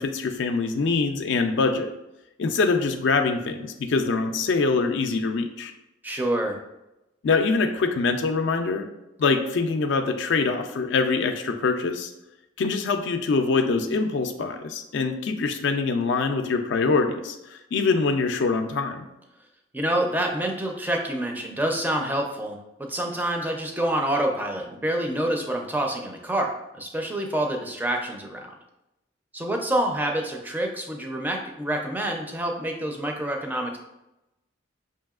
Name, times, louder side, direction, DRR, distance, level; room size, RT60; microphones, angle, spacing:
voice 1, 0.0-1.9 2.4-5.7 7.2-8.9 9.2-12.1 12.6-19.1, left 4 dB, 70° left, 6 dB, 0.4 m, -24 dB
voice 2, 6.0-6.6 19.7-28.5 29.3-33.8, right 1 dB, 10° right, 2 dB, 0.4 m, -27 dB
5.3 x 2.8 x 2.3 m, 0.93 s
head